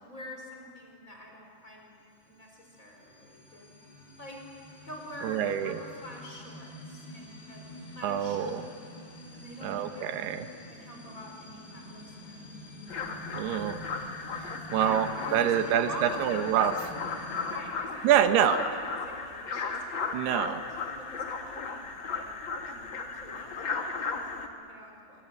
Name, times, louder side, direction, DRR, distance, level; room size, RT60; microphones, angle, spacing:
voice 1, 0.0-1.9 2.2-3.8 4.2-7.6 7.9-8.6 9.3-10.2 10.7-12.5 14.8-16.6 17.0-20.1 20.9-25.2, equal, 20° left, 0 dB, 4.9 m, -46 dB
sound 1, 1.9-17.6, left 1 dB, 75° left, 7.9 m, -47 dB
voice 2, 5.2-5.8 8.0-8.6 9.6-10.5 13.3-13.8 14.3-16.7 18.0-18.6 20.1-20.6, right 10 dB, 80° right, 8 dB, 3.0 m, -26 dB
sound 2, 12.9-24.5, left 4 dB, 50° left, 1.4 m, -36 dB
25.5 x 24.0 x 9.5 m, 2.4 s
omnidirectional pair, 4.7 m